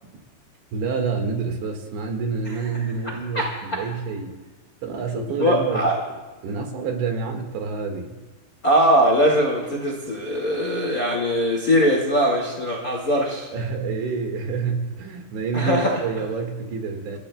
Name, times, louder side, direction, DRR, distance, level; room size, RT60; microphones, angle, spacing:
voice 1, 0.7-4.4 4.8-5.9 6.4-8.2 13.5-17.2, right 5 dB, 75° right, 3 dB, 4.0 m, -28 dB
voice 2, 5.1-6.0 8.6-13.5 15.5-15.9, equal, 55° left, -2 dB, 0.9 m, -21 dB
28.0 x 15.5 x 2.3 m, 1.2 s
omnidirectional pair, 5.2 m